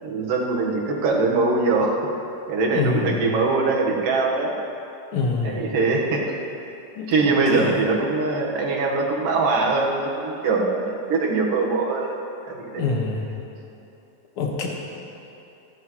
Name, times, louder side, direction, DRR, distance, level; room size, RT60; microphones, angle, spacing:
voice 1, 0.0-2.0 2.5-4.5 5.4-6.4 7.1-12.1 12.5-12.9, right 3 dB, 70° right, -1 dB, 3.1 m, -22 dB
voice 2, 2.7-3.2 5.1-5.6 7.0-7.8 12.8-13.2 14.4-14.7, left 4 dB, 50° left, -1 dB, 2.0 m, -25 dB
28.5 x 10.0 x 3.1 m, 2.8 s
omnidirectional pair, 4.0 m